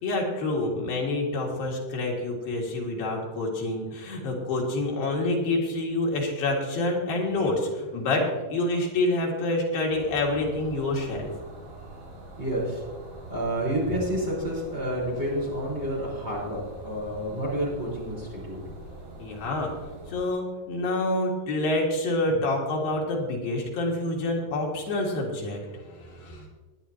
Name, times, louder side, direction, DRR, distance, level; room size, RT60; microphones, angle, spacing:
voice 1, 0.0-11.3 19.2-19.8 20.1-26.4, left 2 dB, 85° left, -1 dB, 3.9 m, -27 dB
sound 1, 9.9-20.3, right 2 dB, 70° right, 6.2 m, -44 dB
voice 2, 12.4-12.8 13.3-18.6, right 1 dB, 15° right, -4 dB, 4.7 m, -29 dB
19.5 x 10.5 x 2.9 m, 1.3 s
omnidirectional pair, 4.0 m